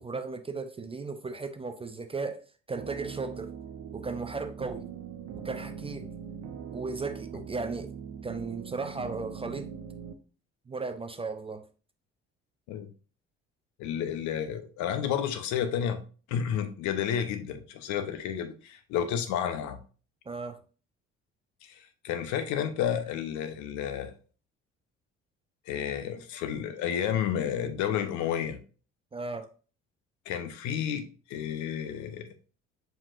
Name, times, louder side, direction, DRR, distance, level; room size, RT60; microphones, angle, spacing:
voice 1, 0.0-3.5 3.9-4.9 5.4-6.1 6.7-7.9 8.2-9.7 10.7-11.7 20.3-20.6 29.1-29.5, right 4 dB, 15° right, 0.6 m, -36 dB
sound 1, 2.7-10.1, right 8 dB, 50° right, 0.9 m, -41 dB
voice 2, 13.8-16.0 16.3-19.8 21.6-24.1 25.7-28.6 30.3-32.3, left 9 dB, 55° left, 0.9 m, -31 dB
7.3 x 5.1 x 2.6 m
figure-of-eight pair, 50°, 35 cm